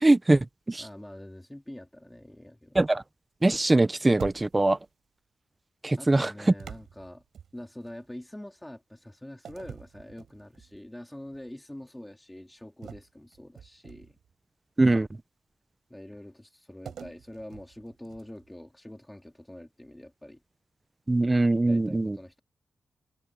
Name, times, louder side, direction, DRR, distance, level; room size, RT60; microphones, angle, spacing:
voice 1, 0.0-0.8 2.8-3.0 3.4-4.8 5.8-6.3 14.8-15.1 21.1-22.2, right 2 dB, 20° right, 0.6 m, -22 dB
voice 2, 0.8-2.8 6.0-7.2 7.5-14.2 15.9-20.4 21.6-22.4, left 1 dB, 10° left, 3.2 m, -45 dB
sound 1, 4.2-4.8 6.6-7.9 9.4-10.8 11.3-11.5 12.8-14.3 16.9-18.5, right 8 dB, 85° right, 5.6 m, -46 dB
cardioid pair, 95°, 0 cm